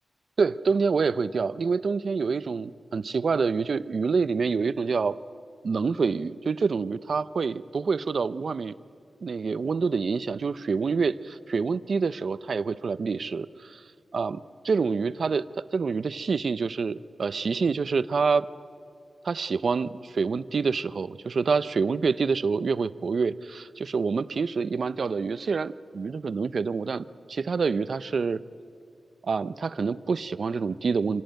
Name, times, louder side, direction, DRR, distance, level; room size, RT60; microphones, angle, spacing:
voice 1, 0.4-5.2 5.6-8.7 9.2-13.8 14.1-15.5 15.7-18.5 19.2-28.4 29.2-31.2, right 5 dB, 55° right, 15 dB, 0.6 m, -27 dB
26.0 x 17.0 x 9.1 m, 2.4 s
wide cardioid pair, 170°, 0 cm